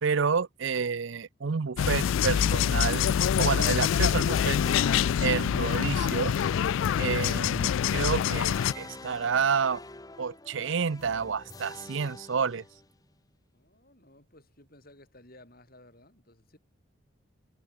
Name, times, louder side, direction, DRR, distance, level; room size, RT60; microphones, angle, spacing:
voice 1, 0.0-3.1 3.4-4.6 5.2-6.3 7.0-9.8 10.2-12.6, right 5 dB, 60° right, 0.5 m, -29 dB
sound 1, 1.8-8.7, left 8 dB, 65° left, 0.3 m, -25 dB
sound 2, 4.2-13.1, left 2 dB, 15° left, 1.0 m, -46 dB
voice 2, 13.5-16.6, left 1 dB, 45° left, 6.7 m, -56 dB
head